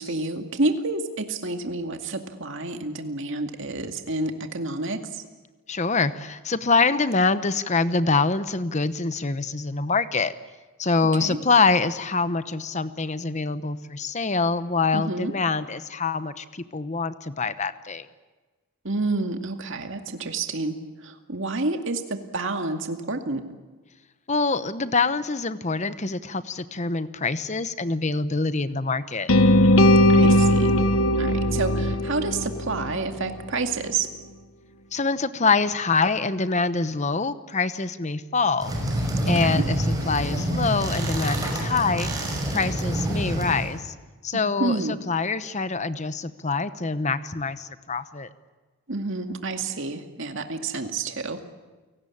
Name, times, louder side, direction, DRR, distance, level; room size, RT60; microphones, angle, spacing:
voice 1, 0.0-5.2 11.2-11.4 14.9-15.3 18.8-23.4 30.1-30.7 31.2-34.1 39.3-39.6 44.3-45.0 48.9-51.4, right 3 dB, 60° right, 6 dB, 2.2 m, -29 dB
voice 2, 5.7-10.3 10.8-18.1 24.3-29.3 34.9-38.7 39.3-42.1 42.5-43.9 44.2-48.3, left 4 dB, 30° left, 13 dB, 1.0 m, -25 dB
sound 1, 29.3-33.4, left 1 dB, 65° left, 1.1 m, -19 dB
sound 2, 38.6-43.8, right 1 dB, 15° right, 5.9 m, -27 dB
29.5 x 18.5 x 8.7 m, 1.3 s
head